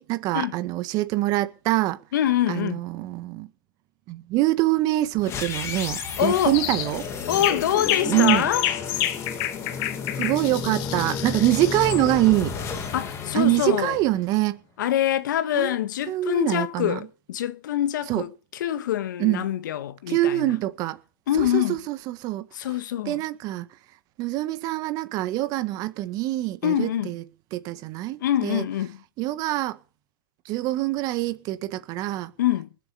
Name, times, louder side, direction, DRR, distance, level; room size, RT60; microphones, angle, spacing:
voice 1, 0.0-2.0 2.5-3.5 4.1-7.1 8.0-8.5 10.2-12.6 13.3-14.6 15.5-15.7 16.1-17.1 18.1-18.2 19.2-19.4 20.1-21.0 21.3-22.5 23.0-23.7 24.2-27.2 27.5-28.7 29.2-29.8 30.4-32.3, right 17 dB, 35° right, 1.7 m, -25 dB
voice 2, 2.1-2.8 6.2-6.6 7.3-8.7 12.9-14.0 14.8-18.3 18.6-20.5 21.3-21.8 22.5-23.2 26.6-27.1 28.2-29.0 32.4-32.7, left 11 dB, 65° left, 1.5 m, -25 dB
sound 1, 5.2-14.4, left 6 dB, 25° left, 2.6 m, -32 dB
sound 2, 6.5-6.9 7.3-12.0, left 13 dB, 40° left, 1.4 m, -29 dB
20.5 x 8.1 x 7.0 m
hypercardioid pair, 135°, 11 cm